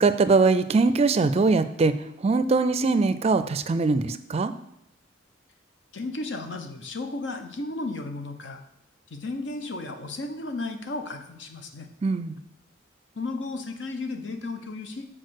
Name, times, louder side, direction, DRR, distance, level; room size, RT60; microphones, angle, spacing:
voice 1, 0.0-4.5 12.0-12.4, right 3 dB, 35° right, 12 dB, 0.4 m, -22 dB
voice 2, 5.9-8.6 9.1-11.9 13.1-15.1, left 2 dB, 75° left, 6 dB, 0.9 m, -34 dB
6.5 x 4.4 x 6.4 m, 0.82 s
head